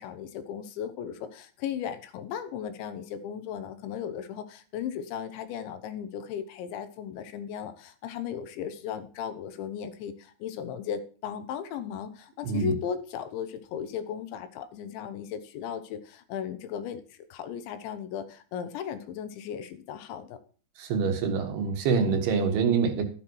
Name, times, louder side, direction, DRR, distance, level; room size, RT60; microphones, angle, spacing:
voice 1, 0.0-20.4, left 8 dB, 85° left, 10 dB, 3.5 m, -36 dB
voice 2, 12.4-12.7 20.8-23.0, right 5 dB, 70° right, 5 dB, 3.3 m, -25 dB
12.5 x 9.6 x 4.7 m, 0.39 s
omnidirectional pair, 5.2 m